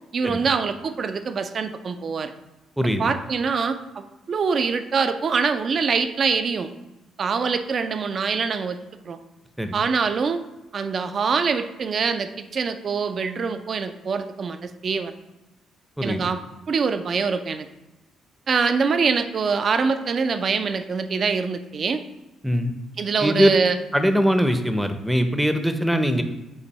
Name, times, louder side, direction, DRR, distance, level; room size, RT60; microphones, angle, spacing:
voice 1, 0.1-2.3 3.0-6.7 7.2-8.8 9.0-9.2 9.7-10.4 10.7-15.1 16.0-16.4 16.7-17.7 18.5-22.0 23.0-23.8, right 5 dB, 50° right, 9 dB, 0.5 m, -24 dB
voice 2, 2.8-3.1 9.6-9.8 16.0-16.2 22.4-22.7 23.2-23.5 23.9-26.2, equal, 5° right, 7 dB, 0.6 m, -21 dB
6.9 x 2.7 x 5.4 m, 1.0 s
cardioid pair, 90°, 0 cm